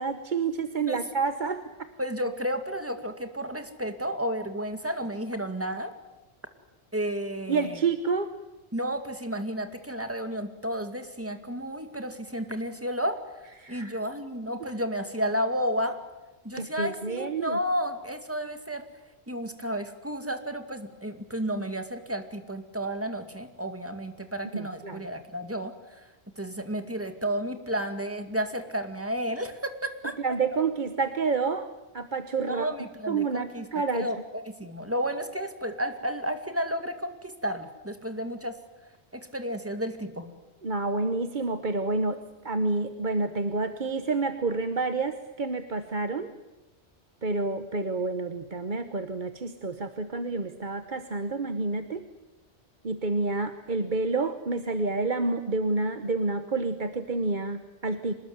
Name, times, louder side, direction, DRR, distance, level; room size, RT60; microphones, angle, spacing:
voice 1, 0.0-1.9 7.5-8.3 13.6-14.0 16.6-17.6 24.5-25.0 30.2-31.7 31.9-32.7 33.1-34.1 40.6-42.2 42.4-46.3 47.2-52.0 52.8-58.1, right 3 dB, 45° right, 9 dB, 1.2 m, -29 dB
voice 2, 2.0-5.9 6.9-7.8 8.7-13.2 13.7-16.0 16.4-18.9 19.3-25.7 26.4-30.2 32.5-33.7 33.9-38.6 39.1-40.3, equal, 10° right, 7 dB, 2.2 m, -32 dB
25.5 x 20.5 x 9.4 m, 1.1 s
omnidirectional pair, 1.2 m